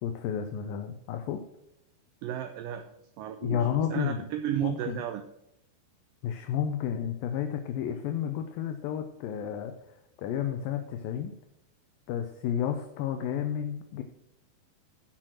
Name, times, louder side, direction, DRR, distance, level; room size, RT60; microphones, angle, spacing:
voice 1, 0.0-1.4 3.4-4.3 4.6-5.0 6.2-9.7 10.2-11.3 12.1-14.0, left 9 dB, 75° left, 7 dB, 2.2 m, -31 dB
voice 2, 2.2-2.9 3.2-5.2, right 10 dB, 85° right, 7 dB, 2.0 m, -33 dB
10.5 x 6.1 x 6.1 m, 0.84 s
omnidirectional pair, 4.6 m